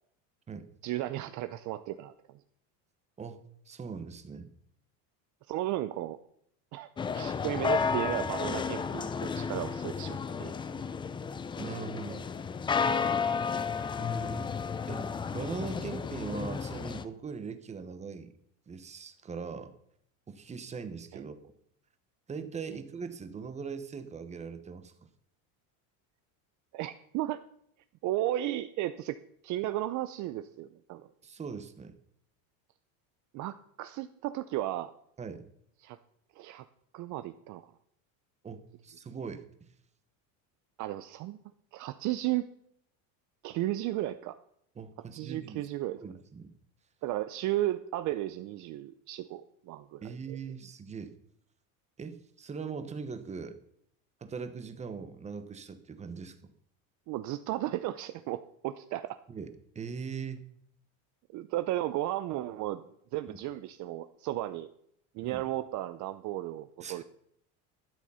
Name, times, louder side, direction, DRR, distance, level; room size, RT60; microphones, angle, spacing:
voice 1, 0.8-2.1 5.5-6.2 6.7-10.5 21.1-21.2 26.7-27.4 28.0-29.2 29.4-31.1 33.3-34.9 35.8-36.0 36.4-36.6 36.9-37.7 40.8-41.4 41.7-42.5 43.4-44.4 45.1-46.0 47.0-50.4 57.1-59.2 61.3-62.8 63.1-64.7 65.1-67.0, right 14 dB, 45° right, 12 dB, 0.6 m, -34 dB
voice 2, 3.2-4.5 11.6-12.3 14.0-14.5 14.9-18.3 18.7-19.7 20.3-21.4 22.3-24.9 31.2-32.0 35.2-35.4 38.4-39.4 44.8-45.6 46.0-46.5 50.0-51.1 52.0-53.6 54.2-56.4 59.3-60.4 63.3-63.4 65.2-65.4 66.8-67.0, right 5 dB, 15° right, 10 dB, 1.0 m, -40 dB
sound 1, 7.0-17.0, left 6 dB, 15° left, 0.3 m, -32 dB
12.5 x 9.3 x 5.6 m, 0.70 s
cardioid pair, 150°, 41 cm